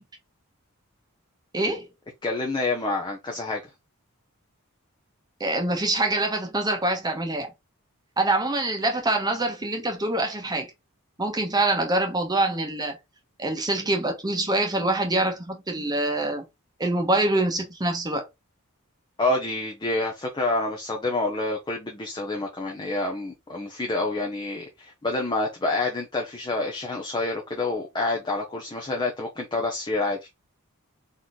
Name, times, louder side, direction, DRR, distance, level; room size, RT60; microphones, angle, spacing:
voice 1, 1.5-1.9 5.4-7.5 8.2-10.7 11.2-13.0 13.4-16.4 16.8-18.3, right 2 dB, 20° right, 1.2 m, -25 dB
voice 2, 2.2-3.6 19.2-30.3, left 2 dB, 20° left, 0.8 m, -28 dB
4.2 x 3.1 x 3.6 m
head